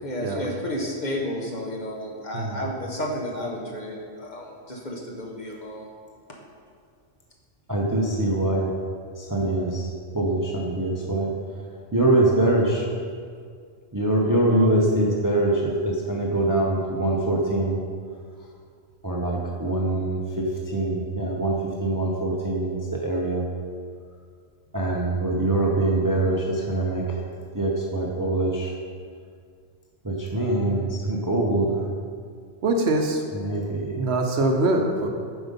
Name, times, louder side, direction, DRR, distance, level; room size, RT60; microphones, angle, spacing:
voice 1, 0.0-5.9 6.3-6.4, left 1 dB, 40° left, -1 dB, 1.0 m, -32 dB
voice 2, 7.7-8.7 9.2-9.9 10.1-11.3 11.9-12.8 13.9-17.8 19.0-23.5 24.7-27.2 27.5-28.7 30.0-31.9 33.3-34.0, right 2 dB, 20° right, -2 dB, 0.6 m, -24 dB
voice 3, 32.6-33.2 34.0-35.1, right 2 dB, 65° right, 3 dB, 0.9 m, -23 dB
7.7 x 5.1 x 5.2 m, 2.1 s
omnidirectional pair, 1.3 m